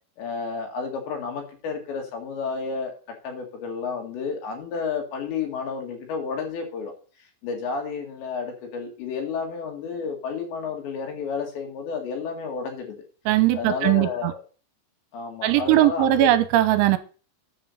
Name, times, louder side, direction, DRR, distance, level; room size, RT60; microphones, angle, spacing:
voice 1, 0.2-2.9 3.2-6.9 7.4-13.1 13.5-14.4 15.1-16.4, left 5 dB, 65° left, 4.0 m, -31 dB
voice 2, 13.3-14.3 15.4-17.0, right 14 dB, 80° right, 3.1 m, -19 dB
10.5 x 5.4 x 7.1 m
omnidirectional pair, 5.8 m